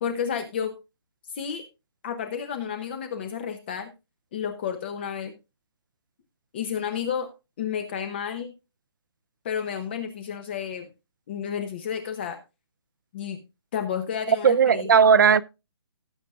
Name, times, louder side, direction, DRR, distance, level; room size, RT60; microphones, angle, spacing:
voice 1, 0.0-0.7 1.3-1.6 2.0-3.9 4.3-5.3 6.5-7.3 7.6-8.5 9.4-10.9 11.3-12.4 13.1-13.4 13.7-15.1, left 8 dB, 25° left, 0.8 m, -31 dB
voice 2, 14.3-15.4, right 6 dB, 55° right, 0.6 m, -17 dB
18.0 x 7.6 x 2.4 m
hypercardioid pair, 170°, 13 cm